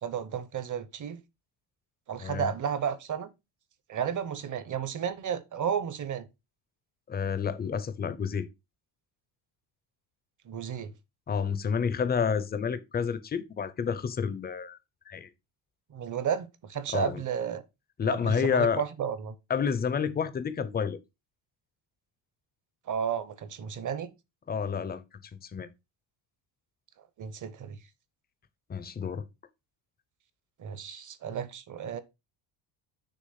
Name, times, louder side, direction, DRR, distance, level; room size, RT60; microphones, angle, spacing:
voice 1, 0.0-1.2 2.1-3.3 3.9-6.3 10.4-10.9 15.9-17.6 18.1-19.3 22.9-24.1 27.2-27.8 30.6-32.0, right 8 dB, 40° right, 0.9 m, -33 dB
voice 2, 7.1-8.5 11.3-14.8 15.1-15.3 16.9-17.2 18.0-18.8 19.5-21.0 24.5-25.0 25.3-25.7 28.7-29.2, left 6 dB, 20° left, 0.6 m, -29 dB
6.6 x 3.0 x 5.7 m
cardioid pair, 125°, 49 cm